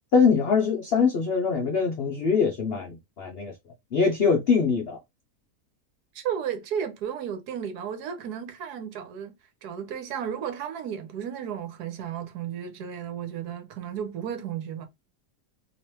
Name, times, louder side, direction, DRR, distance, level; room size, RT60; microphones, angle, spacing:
voice 1, 0.1-3.5 3.9-5.0, left 5 dB, 85° left, 0.5 m, -23 dB
voice 2, 6.1-9.4 9.6-14.9, right 8 dB, 75° right, 1.3 m, -33 dB
3.1 x 2.9 x 2.9 m
omnidirectional pair, 1.8 m